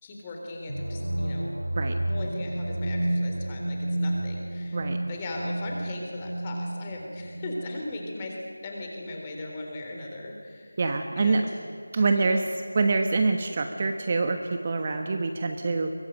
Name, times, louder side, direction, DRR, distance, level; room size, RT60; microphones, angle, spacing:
voice 1, 0.0-1.5 2.1-4.8 5.1-10.7 11.2-11.4 11.9-12.3, left 2 dB, 20° left, 0 dB, 3.7 m, -38 dB
sound 1, 0.7-8.4, right 1 dB, 90° right, 0.5 m, -31 dB
voice 2, 10.8-11.5 11.9-12.4 12.7-15.9, right 3 dB, 30° right, 6 dB, 1.3 m, -25 dB
23.5 x 19.5 x 9.0 m, 2.1 s
figure-of-eight pair, 170°, 0 cm